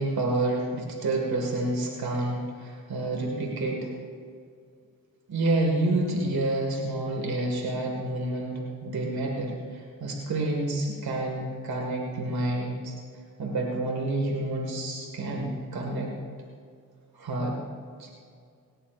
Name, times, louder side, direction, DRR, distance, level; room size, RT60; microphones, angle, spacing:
voice 1, 0.0-3.9 5.3-13.0 13.4-16.1 17.1-17.6 18.0-18.1, right 2 dB, 85° right, 0 dB, 2.0 m, -29 dB
18.5 x 17.0 x 2.5 m, 2.2 s
cardioid pair, 55°, 36 cm